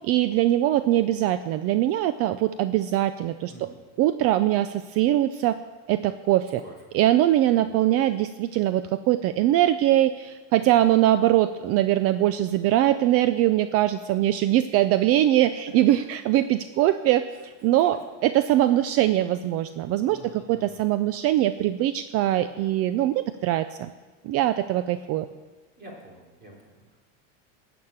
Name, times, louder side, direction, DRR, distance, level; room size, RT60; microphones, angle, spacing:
voice 1, 0.0-3.7 4.0-5.6 5.9-6.6 6.9-17.3 17.6-23.9 24.2-25.3, right 13 dB, 40° right, 12 dB, 0.4 m, -22 dB
voice 2, 3.5-3.8 6.6-6.7 7.5-7.6 10.6-10.8 17.8-17.9 20.1-20.8 25.8-27.0, right 1 dB, 25° right, -2 dB, 3.8 m, -47 dB
13.5 x 6.0 x 8.7 m, 1.3 s
supercardioid pair, 135°, 36 cm